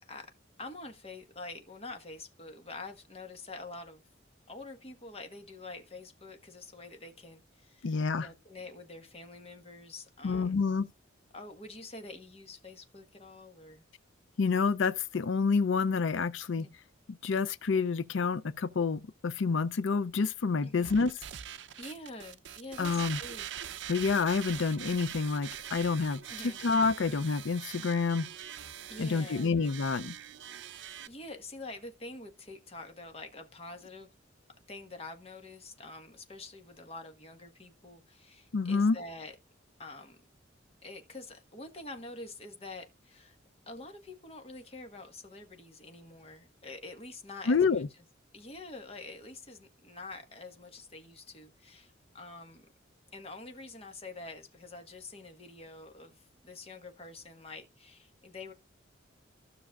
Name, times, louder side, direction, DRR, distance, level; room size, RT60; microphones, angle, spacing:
voice 1, 0.6-4.0 4.5-10.6 11.3-13.8 16.5-16.7 20.6-21.0 21.8-23.5 26.3-26.6 28.9-29.5 31.1-34.1 34.7-39.3 39.8-40.2 40.8-43.4 43.7-47.8 48.3-52.6 53.1-58.5, left 2 dB, 30° left, 1.3 m, -46 dB
voice 2, 7.8-8.3 10.2-10.9 14.4-16.7 17.1-21.1 22.8-23.2 23.9-26.2 26.6-28.3 29.0-30.2 38.5-39.0 47.5-47.9, left 4 dB, 70° left, 0.5 m, -28 dB
sound 1, 20.8-31.1, right 10 dB, 65° right, 0.6 m, -43 dB
15.0 x 6.1 x 2.4 m
head